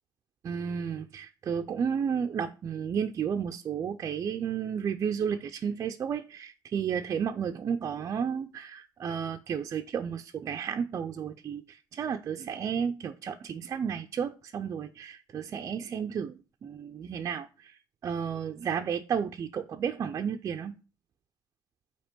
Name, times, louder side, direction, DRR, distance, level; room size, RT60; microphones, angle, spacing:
voice 1, 0.4-20.8, right 7 dB, 45° right, 0.5 m, -32 dB
8.8 x 3.0 x 5.9 m
cardioid pair, 130°, 8 cm